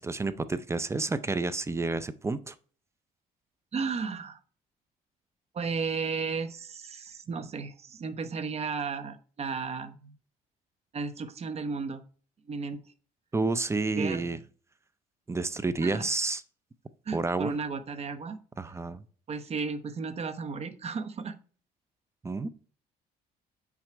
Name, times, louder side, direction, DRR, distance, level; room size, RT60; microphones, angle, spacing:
voice 1, 0.0-2.5 13.3-14.4 15.3-16.4 17.1-17.6 18.6-19.0 22.2-22.5, right 3 dB, 15° right, 0.5 m, -30 dB
voice 2, 3.7-4.4 5.5-10.2 10.9-12.0 12.5-12.8 14.0-14.3 15.8-16.0 17.1-18.4 19.3-21.4, right 5 dB, 40° right, 0.9 m, -34 dB
6.3 x 5.9 x 4.6 m
cardioid pair, 110°, 17 cm